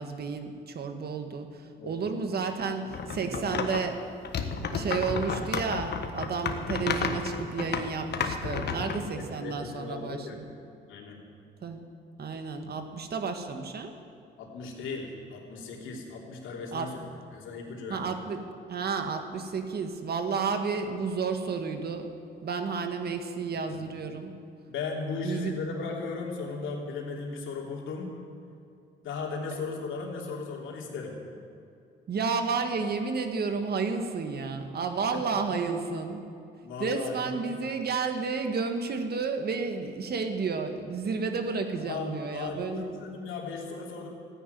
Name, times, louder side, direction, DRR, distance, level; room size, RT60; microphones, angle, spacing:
voice 1, 0.0-4.0 4.6-10.5 11.6-11.8 12.2-13.9 16.7-17.1 17.9-22.1 22.4-24.3 25.2-25.6 32.1-36.2 36.8-42.8, right 5 dB, 55° right, 6 dB, 1.7 m, -31 dB
voice 2, 1.8-2.2 2.8-2.9 3.2-3.5 8.4-10.4 10.9-11.2 14.4-17.0 17.3-18.2 23.5-23.8 24.7-28.2 29.0-31.2 35.1-35.5 36.6-37.5 41.8-44.1, left 4 dB, 80° left, -1 dB, 3.2 m, -37 dB
sound 1, 2.9-3.9 4.2-9.0, left 6 dB, 55° left, 1.4 m, -32 dB
15.0 x 10.0 x 9.4 m, 2.6 s
cardioid pair, 90°, 20 cm